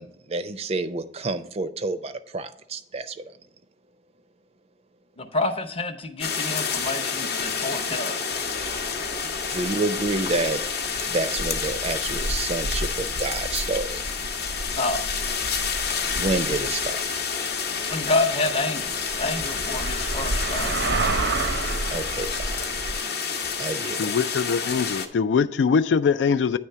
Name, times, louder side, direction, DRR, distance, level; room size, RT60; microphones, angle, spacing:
voice 1, 0.0-3.2 9.5-10.6 11.1-14.0 16.1-17.0 21.9-22.6 23.6-24.1, right 3 dB, 35° right, 0.4 m, -29 dB
voice 2, 5.2-8.2 14.8-15.0 17.9-20.8, left 2 dB, 35° left, 0.7 m, -28 dB
sound 1, 6.2-25.1, left 6 dB, 60° left, 0.8 m, -29 dB
sound 2, 8.3-23.0, right 2 dB, 85° right, 0.7 m, -32 dB
voice 3, 24.0-26.6, left 6 dB, 85° left, 0.3 m, -22 dB
9.3 x 3.3 x 5.6 m
head